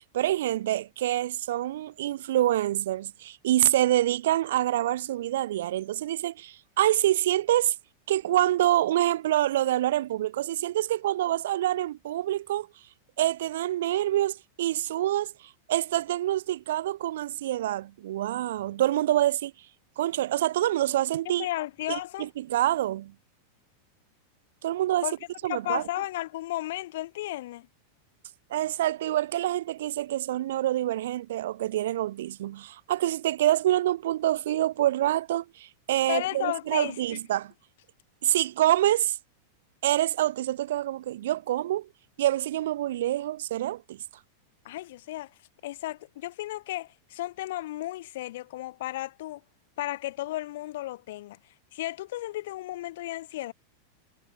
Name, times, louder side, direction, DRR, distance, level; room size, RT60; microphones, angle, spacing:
voice 1, 0.0-7.7 8.1-12.7 13.2-15.3 15.7-19.5 20.0-21.5 21.9-23.1 24.6-25.1 25.4-25.8 28.5-37.5 38.2-39.2 39.8-41.9 42.2-44.0, right 13 dB, 55° right, 0.7 m, -26 dB
voice 2, 21.2-22.3 25.0-25.1 25.4-27.7 36.1-37.2 44.6-45.3 45.6-49.4 49.8-51.4 51.7-53.5, left 16 dB, 55° left, 0.8 m, -34 dB
figure-of-eight pair, 90°, 0 cm